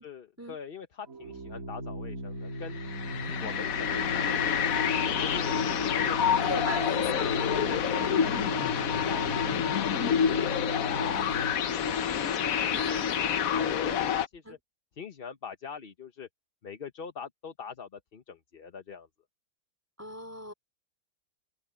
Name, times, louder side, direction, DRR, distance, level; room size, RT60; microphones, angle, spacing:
voice 1, 0.0-2.8 3.3-12.0 12.3-14.6 15.0-16.3 16.6-19.1, left 6 dB, 40° left, 1.0 m, -44 dB
Organ, 1.1-11.8, right 1 dB, 55° right, 2.6 m, -38 dB
sound 1, 2.7-14.3, left 8 dB, 60° left, 1.2 m, -28 dB
voice 2, 6.2-8.3 12.7-13.2 14.5-14.6 20.0-20.5, left 1 dB, 10° right, 3.5 m, -39 dB
open air
omnidirectional pair, 1.8 m